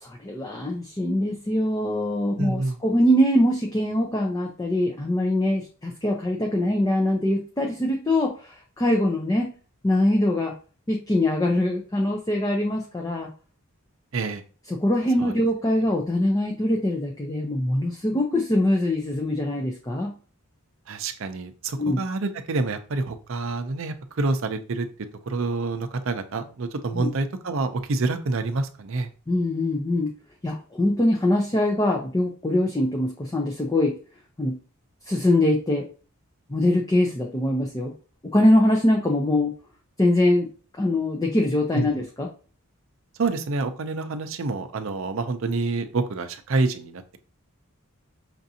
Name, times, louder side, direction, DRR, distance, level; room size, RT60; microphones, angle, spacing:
voice 1, 0.0-9.5 9.8-10.5 10.9-13.3 14.7-20.1 21.8-22.0 26.9-27.1 29.3-30.1 30.4-34.0 34.4-34.6 35.1-35.9 36.5-37.9 38.3-39.5 40.0-40.5 40.7-42.3, left 1 dB, 15° left, 0 dB, 0.5 m, -23 dB
voice 2, 2.4-2.8 14.1-14.4 15.2-15.3 20.9-24.9 25.3-29.1 41.7-41.9 43.2-47.2, right 3 dB, 60° right, 8 dB, 0.5 m, -27 dB
5.8 x 2.5 x 2.7 m, 0.37 s
head